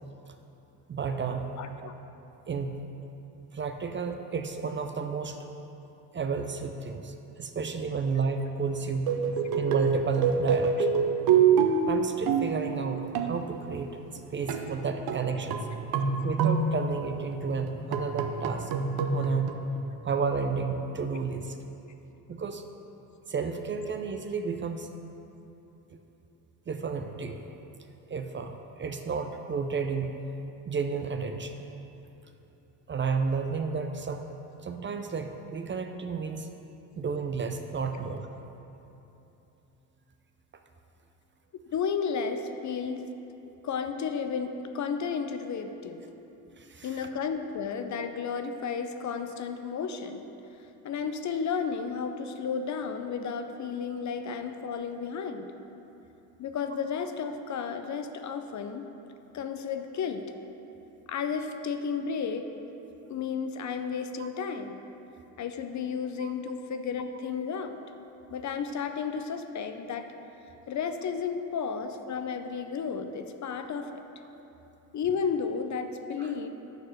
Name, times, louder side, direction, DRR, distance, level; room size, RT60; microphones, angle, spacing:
voice 1, 0.9-1.5 2.5-2.8 3.5-5.4 6.1-9.1 9.6-10.9 11.9-15.6 16.2-18.7 19.1-19.5 20.0-21.6 22.3-22.6 23.3-24.9 26.7-27.4 28.1-30.2 30.7-31.6 32.9-34.2 34.6-36.5 36.9-38.3 46.6-47.0 64.2-64.3 66.2-66.3 76.2-76.3, right 5 dB, 30° right, 6 dB, 0.5 m, -32 dB
voice 2, 1.6-1.9 41.7-43.0 43.6-46.0 46.8-50.3 50.8-55.5 56.4-58.9 59.3-60.2 61.1-62.5 63.1-64.8 65.4-67.8 68.3-70.1 70.7-74.0 74.9-76.5, left 6 dB, 45° left, 7 dB, 0.6 m, -33 dB
sound 1, 9.1-13.6 14.5-14.8 15.1-17.2 17.7-19.5, right 6 dB, 65° right, 0.7 m, -26 dB
6.6 x 4.7 x 6.2 m, 3.0 s
supercardioid pair, 70°, 41 cm